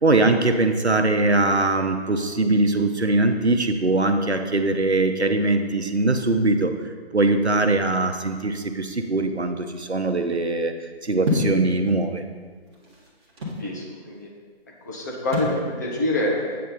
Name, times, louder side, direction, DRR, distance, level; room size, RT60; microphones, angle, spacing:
voice 1, 0.0-6.7 7.1-12.2, right 2 dB, 85° right, 6 dB, 1.0 m, -21 dB
sound 1, 11.2-11.6 12.5-13.7 15.3-15.6, left 1 dB, 25° right, 1.4 m, -25 dB
voice 2, 13.6-14.3 14.8-16.6, left 1 dB, 15° left, -4 dB, 0.9 m, -26 dB
9.0 x 7.8 x 4.0 m, 1.5 s
figure-of-eight pair, 150°, 32 cm